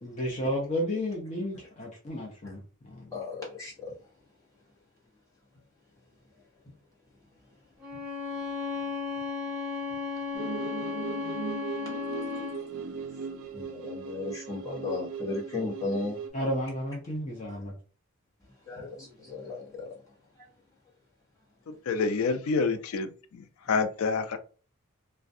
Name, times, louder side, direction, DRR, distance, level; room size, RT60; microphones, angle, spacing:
voice 1, 0.0-3.2 16.3-17.7, equal, 30° left, 0.6 m, -32 dB
voice 2, 3.1-4.3 5.5-6.7 7.0-8.0 8.3-9.1 9.5-9.6 9.9-10.0 11.8-16.2 16.5-16.6 17.5-17.6 18.4-20.5, left 3 dB, 15° left, 0.9 m, -39 dB
Bowed string instrument, 7.8-12.7, left 5 dB, 5° right, 0.7 m, -34 dB
sound 1, 10.3-16.3, right 6 dB, 70° right, 0.4 m, -38 dB
voice 3, 21.7-24.4, left 4 dB, 75° left, 0.4 m, -28 dB
2.3 x 2.1 x 2.6 m
head